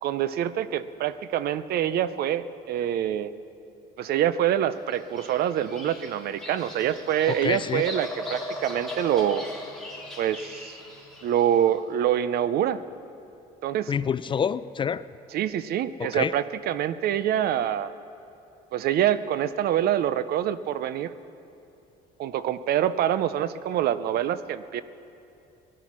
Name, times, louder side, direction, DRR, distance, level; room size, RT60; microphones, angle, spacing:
voice 1, 0.0-3.3 4.0-9.5 10.2-10.8 11.2-12.8 13.6-13.9 15.3-17.9 18.7-21.1 22.2-24.8, right 10 dB, 65° right, 14 dB, 0.6 m, -25 dB
Bird vocalization bird call bird song, 4.9-11.5, left 1 dB, ahead, 2.7 m, -38 dB
voice 2, 7.3-7.8 13.9-15.0 16.0-16.3, left 7 dB, 30° left, 16 dB, 0.3 m, -27 dB
17.5 x 11.0 x 6.1 m, 2.7 s
cardioid pair, 110°, 17 cm